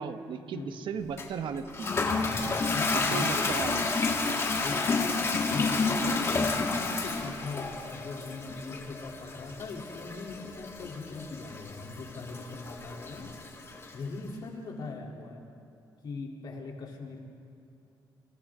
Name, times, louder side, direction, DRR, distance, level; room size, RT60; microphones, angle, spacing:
voice 1, 0.0-1.9 2.9-3.8, right 6 dB, 75° right, 8 dB, 1.2 m, -36 dB
Toilet flush, 1.2-14.0, left 3 dB, 30° left, 2.0 m, -30 dB
voice 2, 2.7-3.6 4.6-5.2 5.5-13.7 13.9-15.5 16.0-17.3, left 3 dB, 60° left, 0 dB, 3.3 m, -40 dB
27.5 x 26.5 x 3.8 m, 2.6 s
cardioid pair, 130°, 8 cm